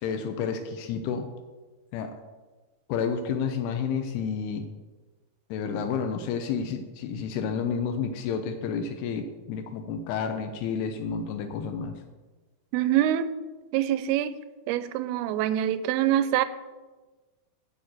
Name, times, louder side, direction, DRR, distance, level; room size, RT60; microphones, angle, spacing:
voice 1, 0.0-1.3 1.9-2.2 2.9-4.7 5.5-12.0, left 6 dB, 85° left, 2.8 m, -30 dB
voice 2, 12.7-13.3 13.7-14.3 14.7-16.4, right 11 dB, 85° right, 2.4 m, -25 dB
8.9 x 6.6 x 7.6 m
omnidirectional pair, 4.5 m